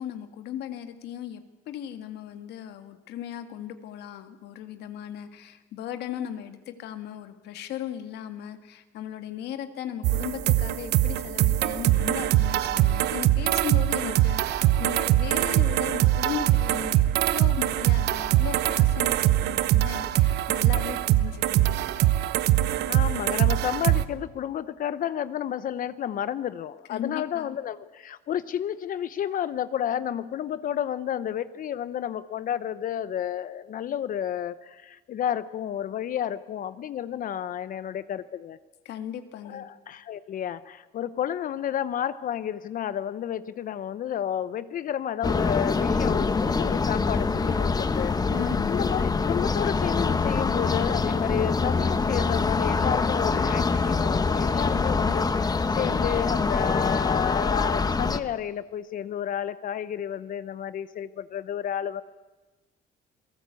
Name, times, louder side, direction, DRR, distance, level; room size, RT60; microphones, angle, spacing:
voice 1, 0.0-22.2 26.9-27.5 38.9-39.7 48.3-48.8, left 10 dB, 75° left, 8 dB, 2.0 m, -37 dB
sound 1, 10.0-24.0, right 14 dB, 80° right, 0.9 m, -23 dB
voice 2, 22.9-38.6 39.4-48.1 48.7-62.0, left 10 dB, 55° left, 14 dB, 0.9 m, -31 dB
sound 2, 45.2-58.2, left 4 dB, 20° left, 1.1 m, -25 dB
28.5 x 18.0 x 8.3 m, 1.2 s
cardioid pair, 110°, 17 cm